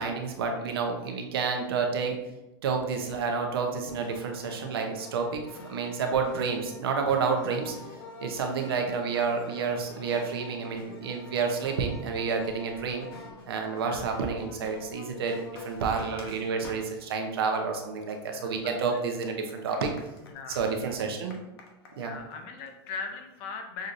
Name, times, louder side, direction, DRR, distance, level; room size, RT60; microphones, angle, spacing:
voice 1, 0.0-2.2 2.6-7.7 8.2-13.1 13.5-19.9 20.5-21.4 22.0-22.1, right 5 dB, 75° right, 3 dB, 0.8 m, -29 dB
sound 1, 3.9-17.2 17.6-23.3, left 2 dB, 75° left, 0.9 m, -47 dB
voice 2, 13.9-14.2 16.2-16.4 18.3-19.0 20.2-20.7 22.0-23.9, left 5 dB, 30° left, 4 dB, 0.5 m, -40 dB
6.3 x 2.7 x 2.5 m, 0.99 s
supercardioid pair, 180°, 13 cm